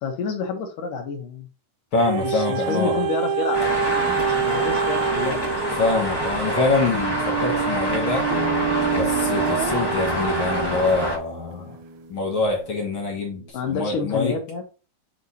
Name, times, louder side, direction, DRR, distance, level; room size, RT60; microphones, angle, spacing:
voice 1, 0.0-1.5 2.2-5.6 13.5-14.6, left 5 dB, 80° left, 2 dB, 3.0 m, -29 dB
voice 2, 1.9-3.0 5.8-8.3 8.9-11.8 12.1-14.3, left 3 dB, 50° left, 0 dB, 1.8 m, -25 dB
sound 1, 2.1-11.2 11.8-11.9, right 8 dB, 75° right, 1.9 m, -26 dB
Traffic noise roadway noise, 3.5-11.2, left 1 dB, 15° left, 0.7 m, -27 dB
Acoustic guitar, 8.3-13.5, equal, 10° right, 1.2 m, -34 dB
8.3 x 3.2 x 4.1 m, 0.33 s
omnidirectional pair, 3.7 m